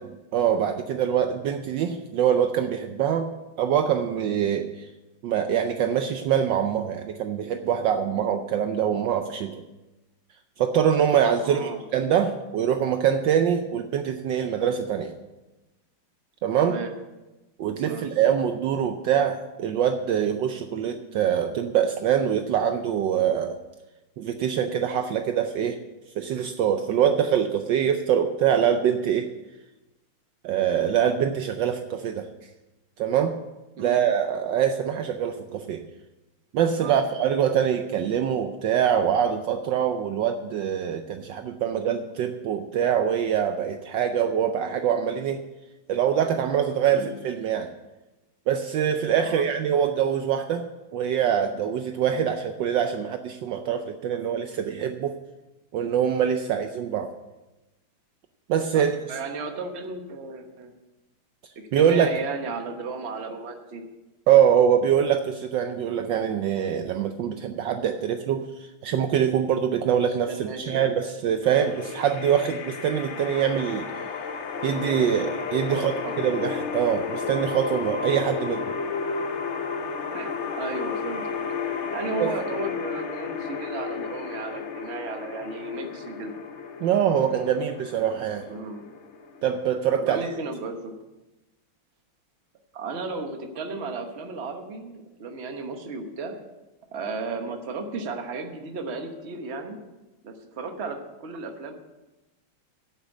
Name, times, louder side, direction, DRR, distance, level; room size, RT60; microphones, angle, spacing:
voice 1, 0.3-3.3 3.6-4.9 5.2-9.6 10.6-15.1 16.4-16.8 17.6-23.6 24.2-25.8 26.2-29.3 30.4-32.3 33.0-33.3 33.8-35.8 36.5-45.4 45.9-47.7 48.5-50.6 50.9-55.2 55.7-57.1 58.5-59.0 61.7-62.2 64.3-73.9 74.6-75.9 76.2-78.7 82.2-82.3 86.8-88.5 89.4-90.3, right 8 dB, 70° right, 7 dB, 1.2 m, -24 dB
voice 2, 11.4-11.8 16.6-16.9 17.8-18.1 33.8-34.0 36.8-37.0 46.9-47.2 49.2-49.4 52.1-52.2 58.7-60.7 61.7-63.8 70.3-71.0 75.7-76.1 80.1-81.3 81.9-86.4 88.4-88.8 89.9-90.9 92.7-96.3 96.9-99.8 100.2-101.7, right 4 dB, 40° right, 5 dB, 1.2 m, -34 dB
sound 1, 71.4-90.4, left 5 dB, 60° left, 0.7 m, -33 dB
8.3 x 8.1 x 8.2 m, 1.1 s
omnidirectional pair, 2.2 m